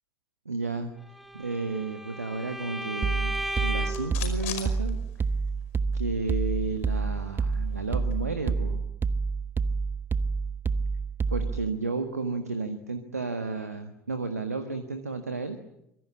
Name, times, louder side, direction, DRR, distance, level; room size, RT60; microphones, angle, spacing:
voice 1, 0.4-0.9 1.3-5.0 5.9-8.8 11.3-15.6, right 3 dB, 85° right, 8 dB, 1.7 m, -32 dB
Bowed string instrument, 1.1-4.2, equal, ahead, 1.9 m, -35 dB
sound 1, 3.0-11.7, right 4 dB, 25° right, 1.2 m, -28 dB
sound 2, 3.2-5.6 5.9-6.0 6.3-8.2, left 10 dB, 65° left, 5.2 m, -43 dB
25.5 x 23.5 x 8.7 m, 0.79 s
figure-of-eight pair, 65°, 8 cm